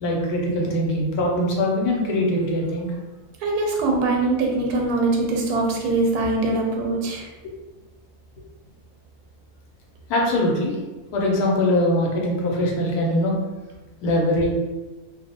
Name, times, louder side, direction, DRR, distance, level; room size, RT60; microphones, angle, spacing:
voice 1, 0.0-2.9 10.1-10.8 11.1-13.4 14.0-14.5, left 1 dB, 85° left, -1 dB, 1.1 m, -22 dB
voice 2, 3.4-7.3, right 2 dB, 85° right, 1 dB, 1.1 m, -22 dB
2.7 x 2.0 x 2.7 m, 1.2 s
omnidirectional pair, 1.6 m